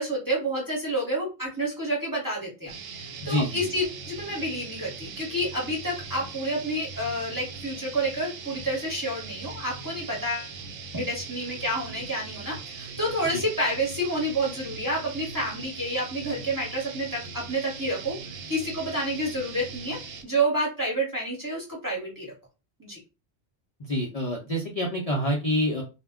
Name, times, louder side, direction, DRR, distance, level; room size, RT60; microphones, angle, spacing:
voice 1, 0.0-10.5 10.9-18.2 18.5-20.0 20.2-22.3 22.8-23.0, right 1 dB, 20° right, -4 dB, 0.9 m, -29 dB
sound 1, 2.7-20.2, right 5 dB, 90° right, 0.9 m, -40 dB
voice 2, 3.2-3.7 13.3-13.4 23.8-25.8, equal, 45° left, 0 dB, 0.5 m, -27 dB
2.2 x 2.1 x 3.4 m, 0.30 s
omnidirectional pair, 1.2 m